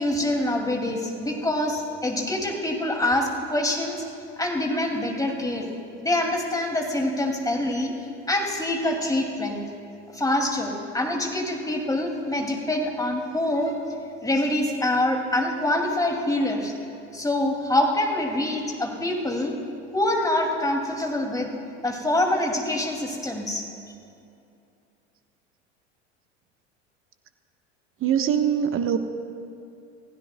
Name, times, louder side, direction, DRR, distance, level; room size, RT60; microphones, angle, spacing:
voice 1, 0.0-4.0 4.4-5.7 6.0-7.9 8.3-9.6 10.1-13.8 14.2-16.7 17.1-19.5 19.9-21.5 21.8-23.6, left 1 dB, 10° left, 2 dB, 2.5 m, -25 dB
voice 2, 28.0-29.0, right 8 dB, 35° right, 7 dB, 1.2 m, -22 dB
29.0 x 16.0 x 2.3 m, 2.6 s
hypercardioid pair, 80°, 36 cm